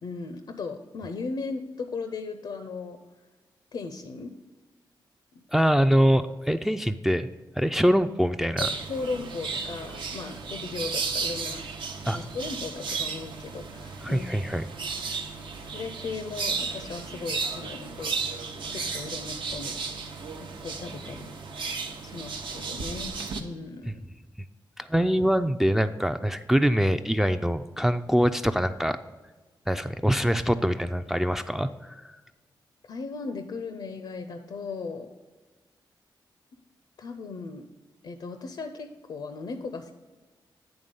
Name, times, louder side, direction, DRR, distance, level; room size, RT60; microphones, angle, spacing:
voice 1, 0.0-3.0 3.7-4.3 8.9-11.7 12.1-14.5 15.6-19.8 20.6-21.3 22.0-23.1 23.4-24.0 32.9-35.1 37.0-37.7 38.0-39.9, left 4 dB, 70° left, 7 dB, 0.5 m, -37 dB
voice 2, 5.5-7.3 7.6-8.7 12.1-12.2 14.0-14.6 24.8-29.0 29.7-31.9, equal, 5° right, 8 dB, 0.3 m, -24 dB
sound 1, 8.6-23.4, right 4 dB, 75° right, 0.7 m, -34 dB
8.9 x 3.5 x 5.3 m, 1.3 s
cardioid pair, 85°, 8 cm